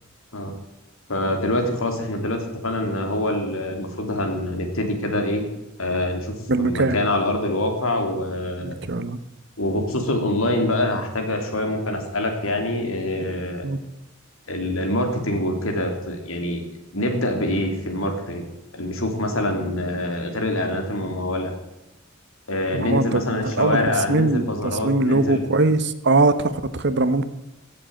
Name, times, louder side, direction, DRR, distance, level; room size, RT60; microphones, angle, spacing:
voice 1, 1.1-5.4 5.8-8.7 9.6-13.6 14.5-16.6 16.9-18.4 18.7-21.5 22.5-25.4, left 1 dB, 80° left, 4 dB, 3.2 m, -25 dB
voice 2, 6.5-7.0 8.6-9.2 13.6-13.8 22.7-27.2, right 2 dB, 55° right, 12 dB, 1.0 m, -21 dB
16.0 x 7.7 x 7.7 m, 0.94 s
head